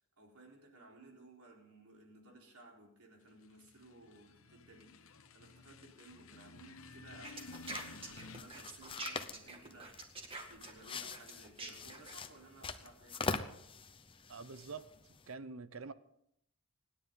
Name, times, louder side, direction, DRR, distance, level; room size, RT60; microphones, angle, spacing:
voice 1, 0.2-13.5, right 2 dB, 90° right, 4.1 m, -58 dB
sound 1, 3.4-8.4, left 4 dB, 70° left, 1.0 m, -53 dB
sound 2, 7.2-12.2, right 2 dB, 25° right, 2.0 m, -45 dB
sound 3, 7.4-15.3, left 4 dB, 25° left, 0.7 m, -44 dB
voice 2, 14.3-14.9 15.3-15.9, right 4 dB, 65° right, 0.7 m, -46 dB
26.5 x 10.0 x 3.9 m
head